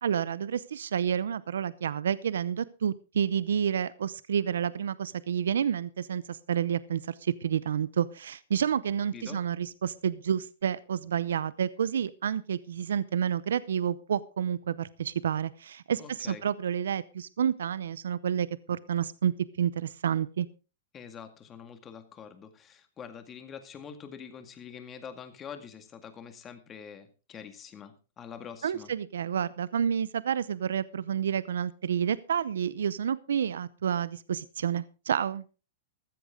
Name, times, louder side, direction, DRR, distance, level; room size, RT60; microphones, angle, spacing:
voice 1, 0.0-20.5 28.6-35.4, right 8 dB, 85° right, 19 dB, 0.6 m, -29 dB
voice 2, 16.0-16.4 20.9-28.9, left 7 dB, 20° left, 9 dB, 2.0 m, -45 dB
14.5 x 13.0 x 3.7 m, 0.33 s
hypercardioid pair, 145°, 0 cm